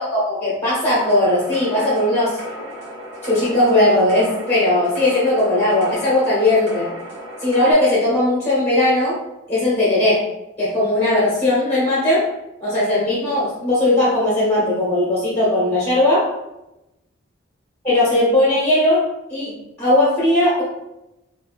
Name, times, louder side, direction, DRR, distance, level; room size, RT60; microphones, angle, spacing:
voice 1, 0.0-2.4 3.2-6.9 7.4-9.2 9.5-10.2 10.6-12.3 12.6-16.3 17.8-20.6, left 1 dB, 10° left, -9 dB, 1.0 m, -18 dB
sound 1, 0.9-7.7, equal, 85° right, 1.1 m, -35 dB
3.5 x 2.5 x 2.3 m, 0.93 s
head